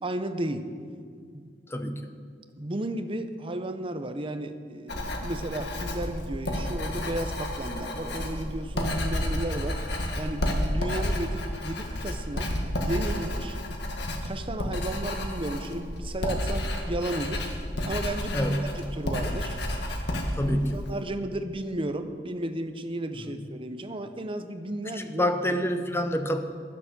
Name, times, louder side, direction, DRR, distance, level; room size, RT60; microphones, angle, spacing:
voice 1, 0.0-0.7 1.3-1.5 2.6-9.8 10.2-12.5 12.8-13.6 14.2-17.5 17.9-19.6 20.4-25.3, right 1 dB, 30° right, 8 dB, 0.8 m, -33 dB
voice 2, 1.7-2.0 18.3-18.6 20.4-20.8 23.1-23.5 25.0-26.4, equal, 15° left, 7 dB, 0.8 m, -27 dB
Writing, 4.9-21.0, left 1 dB, 65° left, 1.7 m, -31 dB
11.5 x 10.0 x 6.8 m, 2.1 s
head